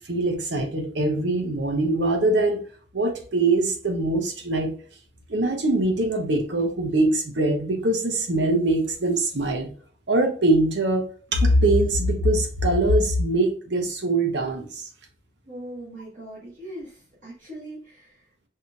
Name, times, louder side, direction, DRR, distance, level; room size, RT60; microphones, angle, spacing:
voice 1, 0.1-2.6 2.9-4.7 5.3-9.7 10.1-11.0 11.3-14.9, right 2 dB, 85° right, 4 dB, 0.9 m, -22 dB
voice 2, 15.4-18.3, right 1 dB, 45° right, -10 dB, 1.5 m, -40 dB
5.6 x 2.7 x 2.3 m, 0.43 s
head